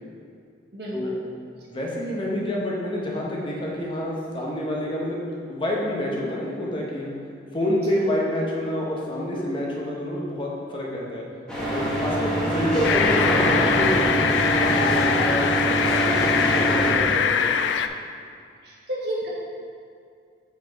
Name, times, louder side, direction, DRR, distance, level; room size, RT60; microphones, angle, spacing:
voice 1, 0.7-1.2 7.6-7.9 18.6-19.3, right 1 dB, 65° right, -5 dB, 1.3 m, -32 dB
voice 2, 1.7-7.1 7.5-11.3 11.7-17.7, left 1 dB, 30° left, -3 dB, 0.9 m, -28 dB
sound 1, 11.5-16.9, right 1 dB, 5° left, 1.3 m, -23 dB
sound 2, 12.8-17.9, left 7 dB, 85° left, 0.3 m, -23 dB
5.1 x 4.6 x 4.5 m, 2.3 s
head